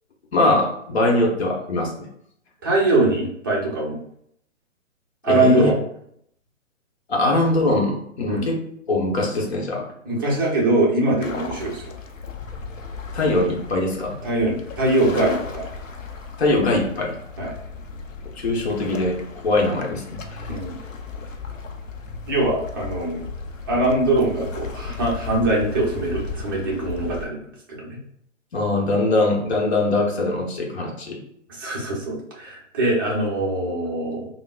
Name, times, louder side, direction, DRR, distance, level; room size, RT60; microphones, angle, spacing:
voice 1, 0.3-2.1 5.2-5.7 7.1-8.6 8.9-9.9 13.1-14.2 16.4-17.2 18.4-20.6 28.5-31.2, left 2 dB, 55° left, 0 dB, 0.9 m, -22 dB
voice 2, 2.6-4.0 5.2-5.8 8.3-8.5 10.0-11.9 14.2-15.6 17.4-17.5 20.5-20.8 22.3-23.2 23.7-28.0 31.5-34.3, right 2 dB, 20° right, -4 dB, 0.4 m, -22 dB
sound 1, 11.2-27.3, left 4 dB, 80° left, 0.6 m, -35 dB
3.6 x 2.0 x 2.3 m, 0.70 s
figure-of-eight pair, 135°, 38 cm